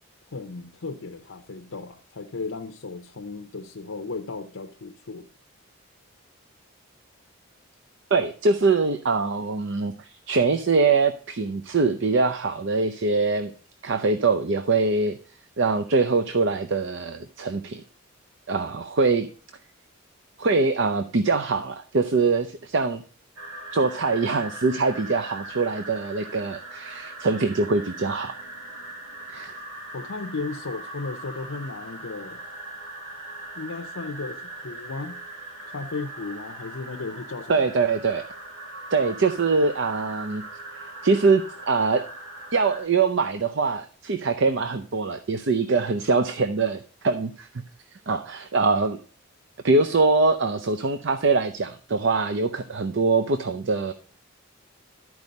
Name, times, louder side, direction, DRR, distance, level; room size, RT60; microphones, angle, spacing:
voice 1, 0.3-5.3 29.9-32.4 33.5-35.2 35.7-37.7, left 3 dB, 70° left, 4 dB, 0.7 m, -35 dB
voice 2, 8.1-13.5 13.8-15.2 15.6-17.8 18.5-19.3 20.4-23.0 23.7-28.4 29.3-29.5 37.5-38.2 38.9-40.4 41.0-42.0 42.5-47.5 48.1-49.0 49.6-53.9, right 4 dB, 55° right, 9 dB, 0.6 m, -23 dB
sound 1, 23.4-42.9, right 2 dB, 75° right, 2.1 m, -40 dB
12.5 x 4.7 x 5.2 m, 0.40 s
head